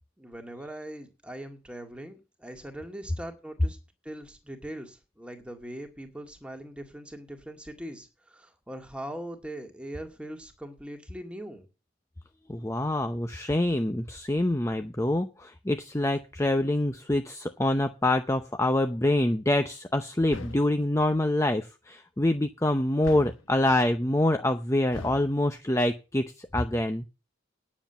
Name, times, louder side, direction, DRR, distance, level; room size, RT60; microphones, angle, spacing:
voice 1, 0.2-3.8 4.0-11.6, right 1 dB, 5° right, 2.0 m, -41 dB
voice 2, 12.5-27.0, left 1 dB, 15° left, 0.6 m, -26 dB
sound 1, 20.3-20.8 23.0-23.5 24.9-25.3, left 2 dB, 90° left, 1.4 m, -41 dB
9.8 x 7.3 x 7.9 m
head